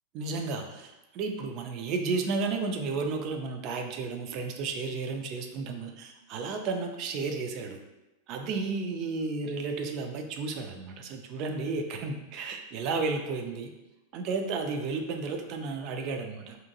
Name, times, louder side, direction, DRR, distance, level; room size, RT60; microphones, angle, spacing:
voice 1, 0.1-7.8 8.3-13.7 14.1-16.6, right 4 dB, 40° right, 5 dB, 0.3 m, -33 dB
2.7 x 2.5 x 2.6 m, 1.0 s
figure-of-eight pair, 90°, 0 cm